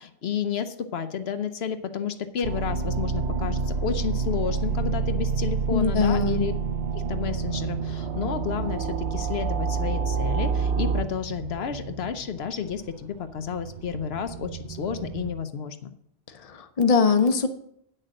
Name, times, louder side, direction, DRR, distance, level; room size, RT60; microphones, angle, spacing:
voice 1, 0.0-6.5 6.9-15.9, left 7 dB, 75° left, 9 dB, 1.0 m, -31 dB
sound 1, 2.4-11.0, right 5 dB, 90° right, 1.1 m, -27 dB
sound 2, 2.6-15.4, right 5 dB, 50° right, 0.7 m, -40 dB
voice 2, 5.7-6.5 16.5-17.5, left 5 dB, 40° left, 7 dB, 0.8 m, -21 dB
8.8 x 6.5 x 6.4 m, 0.70 s
omnidirectional pair, 1.1 m